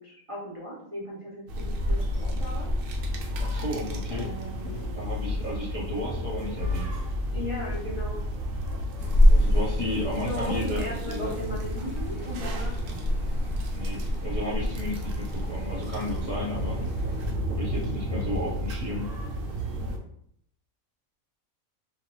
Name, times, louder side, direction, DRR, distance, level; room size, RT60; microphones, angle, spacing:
voice 1, 0.0-2.7 4.1-5.0 7.3-8.2 10.1-12.8 16.0-16.9, equal, 45° right, -6 dB, 0.4 m, -38 dB
sound 1, 1.5-20.0, equal, 75° right, 0.9 m, -28 dB
voice 2, 3.4-4.3 4.7-6.9 9.3-11.3 13.7-17.1 17.5-19.1, left 1 dB, 40° left, -7 dB, 0.5 m, -34 dB
sound 2, 9.0-17.3, right 1 dB, 10° left, 1.0 m, -47 dB
2.8 x 2.2 x 3.0 m, 0.70 s
omnidirectional pair, 1.4 m